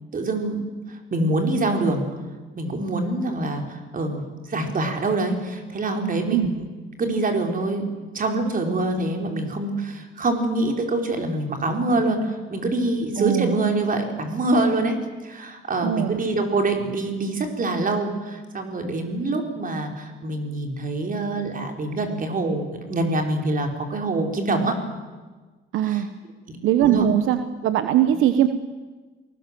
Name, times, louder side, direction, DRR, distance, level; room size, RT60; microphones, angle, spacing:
voice 1, 0.1-2.0 2.6-6.7 7.0-7.8 8.1-15.0 15.2-24.7 25.8-26.0 26.5-26.6 26.8-27.1, right 2 dB, 45° right, 3 dB, 4.9 m, -25 dB
voice 2, 13.2-13.5 15.8-16.2 25.7-26.1 26.6-28.5, right 11 dB, 85° right, 9 dB, 1.1 m, -21 dB
28.0 x 19.5 x 7.7 m, 1.3 s
cardioid pair, 90°, 20 cm